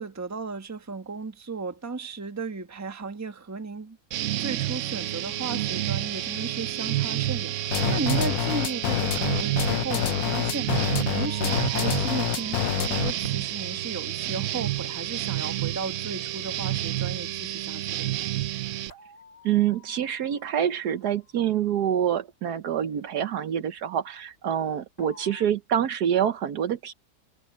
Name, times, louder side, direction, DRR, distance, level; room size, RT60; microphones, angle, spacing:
voice 1, 0.0-4.0 4.4-18.1, right 4 dB, 10° right, 0.9 m, -35 dB
sound 1, 4.1-18.9, right 14 dB, 90° right, 0.6 m, -29 dB
sound 2, 7.7-13.3, left 14 dB, 70° left, 0.9 m, -27 dB
sound 3, 11.1-14.1 18.9-21.1 25.0-25.5, left 7 dB, 40° left, 4.1 m, -49 dB
voice 2, 19.4-26.9, right 9 dB, 65° right, 1.3 m, -26 dB
omnidirectional pair, 1.9 m